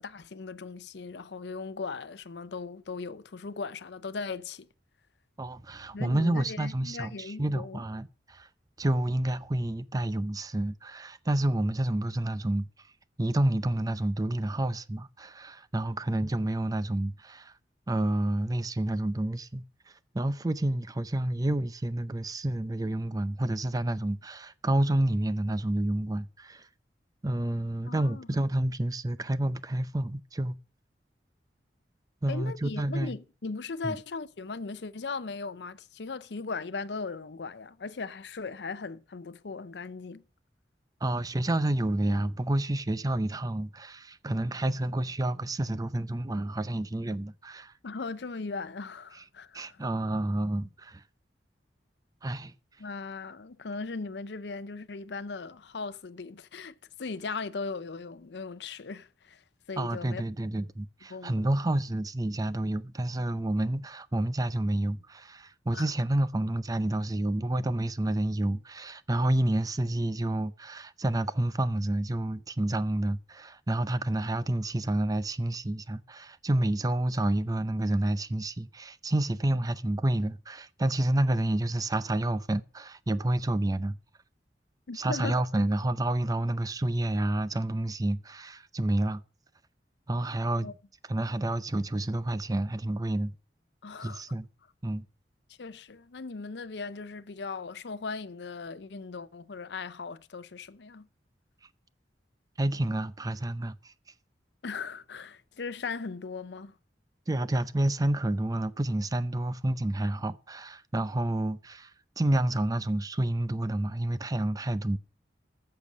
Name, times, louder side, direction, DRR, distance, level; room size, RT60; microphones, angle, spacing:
voice 1, 0.0-4.7 5.9-7.8 27.9-28.3 32.3-40.2 47.8-49.8 52.8-60.2 61.1-61.5 65.7-65.9 84.9-85.4 90.6-90.7 93.8-94.2 95.6-101.1 104.6-106.7, left 4 dB, 70° left, 0.6 m, -38 dB
voice 2, 5.4-8.5 8.8-12.9 13.2-17.5 17.9-19.6 20.1-26.7 27.2-30.6 32.2-33.2 33.8-34.0 41.0-47.7 49.5-51.0 52.2-52.5 59.8-84.0 84.9-89.2 90.1-90.7 91.1-93.3 94.0-94.5 94.8-95.0 102.6-103.9 107.3-115.0, right 1 dB, 20° right, 0.5 m, -29 dB
13.5 x 6.9 x 6.1 m
head